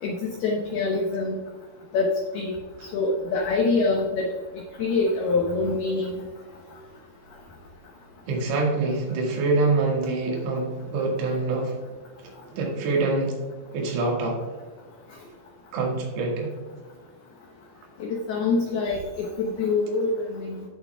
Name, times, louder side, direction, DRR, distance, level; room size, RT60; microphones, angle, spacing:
voice 1, 0.0-1.4 1.9-2.5 2.8-4.3 4.8-6.2 18.0-20.7, left 3 dB, 80° left, 0 dB, 2.3 m, -25 dB
voice 2, 8.3-11.8 12.5-13.4 13.7-14.4 15.7-16.5, right 3 dB, 80° right, -1 dB, 4.5 m, -25 dB
15.5 x 6.9 x 2.3 m, 1.4 s
omnidirectional pair, 5.8 m